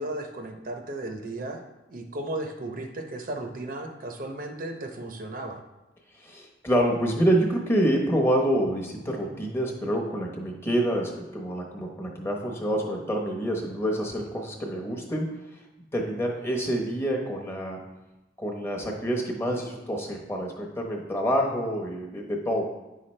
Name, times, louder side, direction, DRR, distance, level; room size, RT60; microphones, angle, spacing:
voice 1, 0.0-1.6 1.9-5.6, right 1 dB, 45° right, 4 dB, 0.7 m, -35 dB
voice 2, 6.2-15.3 15.9-17.8 18.4-22.6, equal, 15° left, 0 dB, 0.9 m, -27 dB
9.2 x 5.7 x 3.2 m, 1.0 s
head